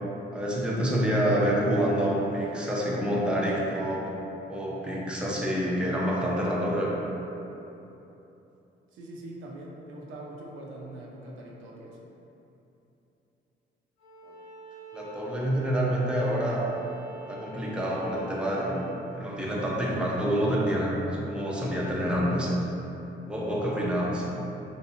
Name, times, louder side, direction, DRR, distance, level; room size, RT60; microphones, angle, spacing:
voice 1, 0.3-4.1 4.5-6.9 14.9-16.7 17.3-18.8 19.2-21.0 21.3-22.5 23.3-24.3, equal, 5° right, -5 dB, 0.5 m, -27 dB
voice 2, 8.9-12.1, right 1 dB, 85° right, -3 dB, 0.5 m, -42 dB
Bowed string instrument, 14.0-19.0, right 2 dB, 85° left, 1.3 m, -46 dB
3.1 x 2.8 x 2.7 m, 3.0 s
cardioid pair, 90°, 20 cm